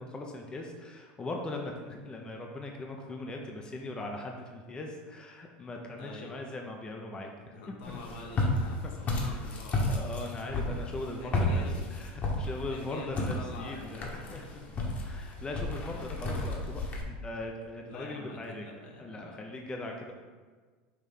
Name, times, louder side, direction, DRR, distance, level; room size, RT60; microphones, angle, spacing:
voice 1, 0.0-8.0 9.2-9.5 9.9-11.6 11.9-14.7 15.0-16.8 17.1-18.7 19.0-20.1, left 2 dB, 20° left, 1 dB, 0.6 m, -40 dB
voice 2, 6.0-6.4 7.5-10.0 10.3-10.8 11.2-11.8 12.7-14.2 15.9-16.2 17.8-19.4, left 3 dB, 70° left, 1 dB, 1.3 m, -46 dB
Walk footsteps, 7.8-17.0, left 2 dB, 35° left, 1.2 m, -33 dB
5.7 x 3.1 x 5.3 m, 1.5 s
supercardioid pair, 120°, 5 cm